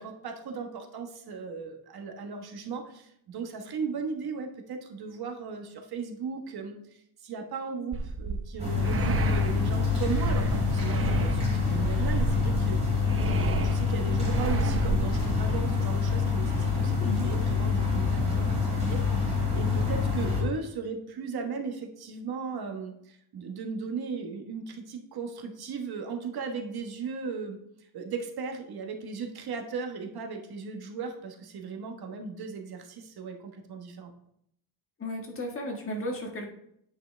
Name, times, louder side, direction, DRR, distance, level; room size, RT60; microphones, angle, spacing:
voice 1, 0.0-27.6 27.9-34.1, right 5 dB, 60° right, 4 dB, 1.3 m, -37 dB
sound 1, 7.9-15.6, right 6 dB, 35° right, 0.6 m, -32 dB
sound 2, 8.6-20.4, left 5 dB, 15° right, 3.2 m, -26 dB
voice 2, 17.0-17.3 35.0-36.5, left 1 dB, 30° left, 1 dB, 1.6 m, -34 dB
9.0 x 5.6 x 3.3 m, 0.72 s
cardioid pair, 135°, 42 cm